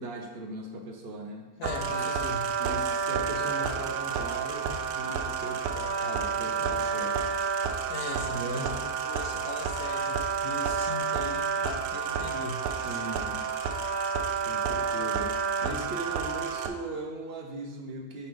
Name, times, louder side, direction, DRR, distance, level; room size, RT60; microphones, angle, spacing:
voice 1, 0.0-1.5 1.9-7.4 7.6-7.9 8.3-8.7 12.8-13.5 14.0-18.3, right 2 dB, 50° right, 3 dB, 0.8 m, -39 dB
voice 2, 1.6-2.5 7.9-13.1, left 4 dB, 80° left, 5 dB, 1.2 m, -40 dB
sound 1, 1.6-16.7, right 6 dB, 75° right, 1.0 m, -30 dB
6.9 x 3.3 x 5.2 m, 1.3 s
omnidirectional pair, 1.6 m